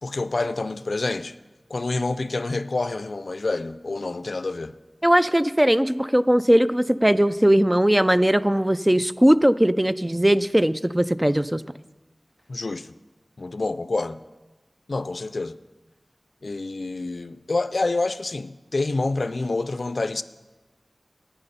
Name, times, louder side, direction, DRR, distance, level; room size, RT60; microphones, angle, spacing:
voice 1, 0.0-1.3 1.7-4.7 12.5-12.9 13.4-14.2 14.9-15.6 16.4-20.2, left 3 dB, 75° left, 0.4 m, -27 dB
voice 2, 5.0-11.6, right 1 dB, 15° right, 0.3 m, -19 dB
11.0 x 8.9 x 5.5 m
wide cardioid pair, 65°, 0 cm